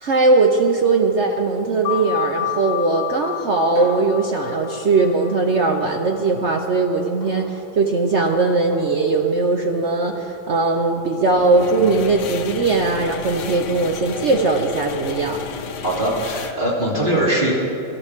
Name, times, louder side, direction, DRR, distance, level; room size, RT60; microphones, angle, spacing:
voice 1, 0.0-15.4, right 3 dB, 70° right, 3 dB, 0.6 m, -19 dB
sound 1, 1.8-7.0, left 14 dB, 90° left, 0.8 m, -31 dB
sound 2, 1.9-2.2 2.6-2.7 3.7-4.2 5.3-5.5 7.2-7.6 8.7-8.9 10.1-10.3, left 1 dB, 55° right, 4.5 m, -37 dB
sound 3, 11.3-16.5, left 7 dB, 65° left, 1.3 m, -32 dB
voice 2, 15.8-17.5, right 1 dB, 25° right, -6 dB, 3.0 m, -21 dB
24.5 x 12.5 x 3.5 m, 2.8 s
omnidirectional pair, 2.2 m